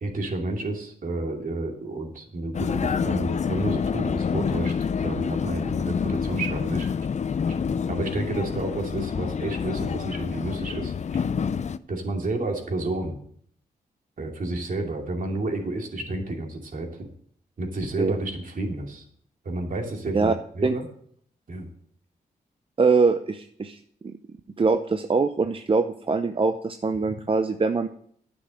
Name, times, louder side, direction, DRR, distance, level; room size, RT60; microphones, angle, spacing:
voice 1, 0.0-4.7 5.0-6.9 7.5-7.6 7.9-11.2 11.9-13.2 14.2-17.1 17.6-19.0 19.4-20.9 21.5-21.7 27.0-27.1, right 2 dB, 55° right, 2 dB, 2.6 m, -30 dB
Vehicle, 2.5-11.8, left 6 dB, 45° left, 0.5 m, -27 dB
voice 2, 22.8-24.1 24.6-27.9, right 4 dB, 35° right, 8 dB, 0.7 m, -23 dB
9.9 x 6.2 x 7.5 m, 0.64 s
cardioid pair, 55°, 16 cm